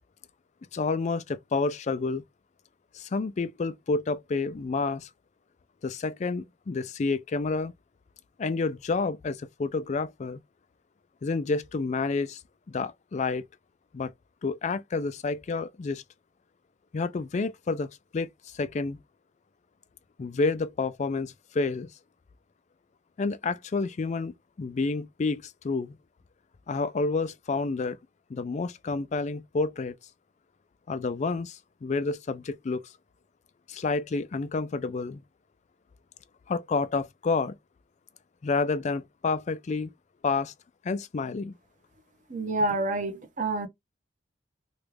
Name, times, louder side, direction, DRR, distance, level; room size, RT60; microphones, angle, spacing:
voice 1, 0.7-2.2 2.9-5.1 5.8-7.7 8.4-10.4 11.2-12.4 12.7-13.5 13.9-14.1 14.4-16.0 16.9-17.9 18.1-19.0 20.2-21.9 23.2-26.0 26.7-28.0 28.3-30.0 30.9-32.8 33.7-35.2 36.5-37.6 38.4-39.9 40.2-40.5 40.8-41.5, left 4 dB, 40° left, 0.4 m, -29 dB
voice 2, 42.3-43.7, right 2 dB, 45° right, 1.0 m, -28 dB
3.1 x 2.4 x 3.2 m
head